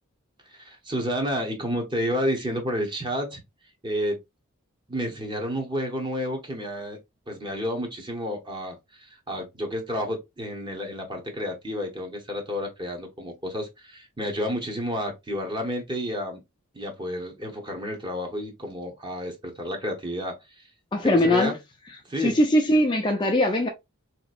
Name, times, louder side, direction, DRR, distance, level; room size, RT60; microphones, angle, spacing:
voice 1, 0.5-3.4 3.8-4.2 4.9-7.0 7.3-16.4 16.7-20.7 21.0-21.5 22.1-22.4, equal, 20° right, 0.9 m, -30 dB
voice 2, 20.9-21.5 22.2-23.7, left 1 dB, 20° left, 0.4 m, -21 dB
3.8 x 2.9 x 2.4 m
head